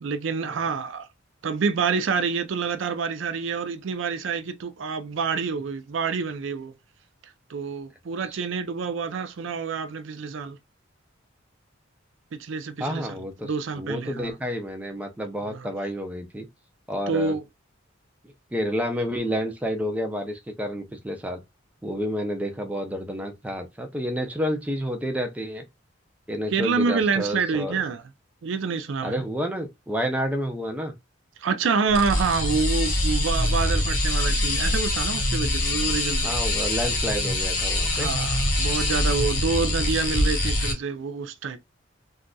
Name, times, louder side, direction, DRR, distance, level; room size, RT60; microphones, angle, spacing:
voice 1, 0.0-1.1 1.4-6.7 7.5-10.6 12.3-13.1 13.4-14.3 15.5-15.7 17.1-17.4 26.5-28.0 28.4-29.2 31.4-36.3 37.9-41.6, right 5 dB, 70° right, 0.4 m, -27 dB
voice 2, 12.8-16.5 16.9-17.4 18.2-21.4 21.8-25.6 26.3-27.8 29.0-30.9 36.2-38.1, equal, 5° right, 0.5 m, -30 dB
sound 1, 31.9-40.7, left 1 dB, 45° left, 1.3 m, -24 dB
3.8 x 2.4 x 2.3 m
head